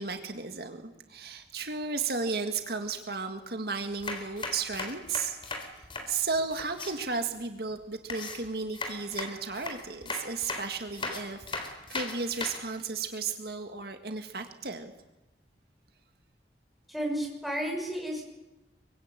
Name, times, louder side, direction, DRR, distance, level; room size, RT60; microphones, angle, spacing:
voice 1, 0.0-5.4 6.1-14.9, right 4 dB, 60° right, 6 dB, 1.9 m, -34 dB
sound 1, 3.8-6.9 8.1-12.7, left 3 dB, 30° left, 3.9 m, -38 dB
voice 2, 16.9-18.2, equal, ahead, -1 dB, 6.7 m, -32 dB
24.5 x 24.0 x 9.1 m, 1.0 s
head